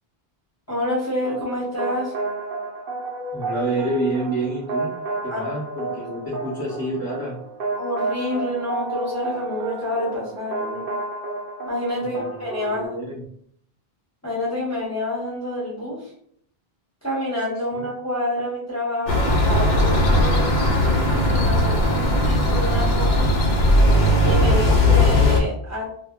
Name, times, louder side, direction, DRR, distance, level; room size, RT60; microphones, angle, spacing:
voice 1, 0.7-2.1 5.3-5.5 7.7-10.9 11.7-13.0 14.2-16.1 17.0-20.5 21.1-23.3 24.2-25.9, left 1 dB, 15° left, -8 dB, 1.0 m, -28 dB
sound 1, 1.2-12.9, right 3 dB, 65° right, 0.8 m, -31 dB
voice 2, 3.3-5.0 5.2-7.4 12.0-12.2 12.6-13.3 17.7-17.8, right 1 dB, 10° right, -7 dB, 0.9 m, -28 dB
sound 2, 19.1-25.4, left 1 dB, 55° left, 0.6 m, -18 dB
2.2 x 2.1 x 3.6 m, 0.67 s
omnidirectional pair, 1.0 m